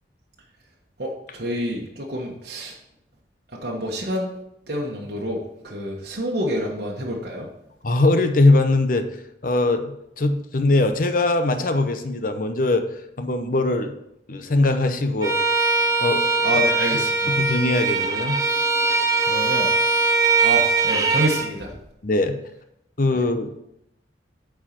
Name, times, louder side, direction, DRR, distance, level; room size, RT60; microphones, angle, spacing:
voice 1, 1.0-2.8 3.6-4.3 4.7-7.5 16.4-17.3 19.2-19.7 20.4-21.8 23.1-23.2, equal, 60° right, -3 dB, 1.3 m, -28 dB
voice 2, 7.8-9.1 9.4-12.9 13.2-13.9 14.3-15.4 16.0-16.2 16.5-16.6 17.3-18.4 22.0-22.4 23.0-23.5, left 2 dB, 50° left, 8 dB, 0.8 m, -21 dB
Bowed string instrument, 15.2-21.5, right 3 dB, 20° right, 0.9 m, -21 dB
8.9 x 4.7 x 5.9 m, 0.79 s
head